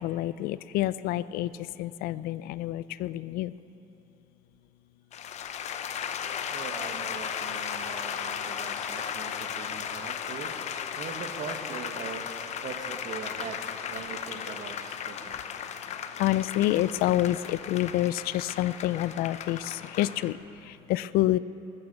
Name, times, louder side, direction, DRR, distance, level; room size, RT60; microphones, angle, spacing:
voice 1, 0.0-1.5 1.8-3.5 16.2-20.3 20.9-21.4, left 15 dB, 75° left, 17 dB, 0.4 m, -27 dB
sound 1, 5.1-20.3, left 8 dB, 50° left, 0.7 m, -36 dB
voice 2, 6.5-15.3, right 6 dB, 55° right, 4 dB, 1.5 m, -41 dB
14.0 x 13.0 x 6.6 m, 2.9 s
cardioid pair, 130°, 15 cm